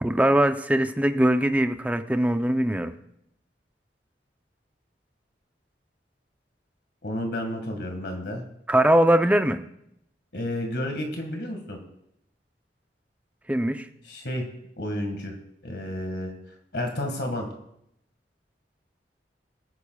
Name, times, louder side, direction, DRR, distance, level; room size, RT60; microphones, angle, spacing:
voice 1, 0.0-2.9 8.7-9.6 13.5-13.8, right 1 dB, 10° right, 7 dB, 0.6 m, -21 dB
voice 2, 7.0-8.4 10.3-11.8 14.0-14.5 14.8-15.4 15.6-16.3 16.7-17.5, left 1 dB, 70° left, 3 dB, 1.9 m, -31 dB
21.0 x 9.8 x 2.4 m, 0.75 s
head